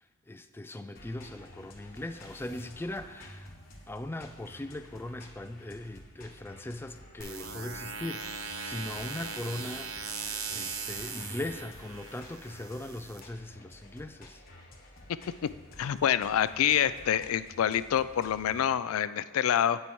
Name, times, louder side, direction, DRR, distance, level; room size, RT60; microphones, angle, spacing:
voice 1, 0.3-3.5 3.9-14.4, left 1 dB, 10° left, 9 dB, 0.4 m, -40 dB
sound 1, 0.9-18.6, left 1 dB, 45° left, 1.3 m, -51 dB
sound 2, 7.2-13.2, right 5 dB, 85° right, 0.8 m, -39 dB
voice 2, 15.8-19.8, left 9 dB, 90° left, 15 dB, 0.4 m, -27 dB
16.5 x 5.6 x 3.1 m, 1.3 s
head